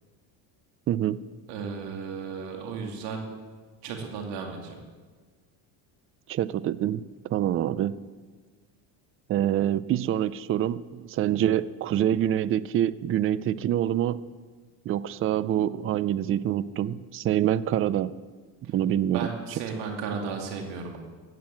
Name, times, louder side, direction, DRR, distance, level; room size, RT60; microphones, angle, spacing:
voice 1, 0.9-1.2 6.3-7.0 7.3-7.9 9.3-14.2 14.9-18.1 18.6-19.3, right 11 dB, 30° right, 17 dB, 0.4 m, -26 dB
voice 2, 1.5-3.3 3.8-4.8 19.1-21.0, right 5 dB, 75° right, 2 dB, 2.5 m, -34 dB
16.0 x 9.5 x 7.5 m, 1.4 s
cardioid pair, 130°, 43 cm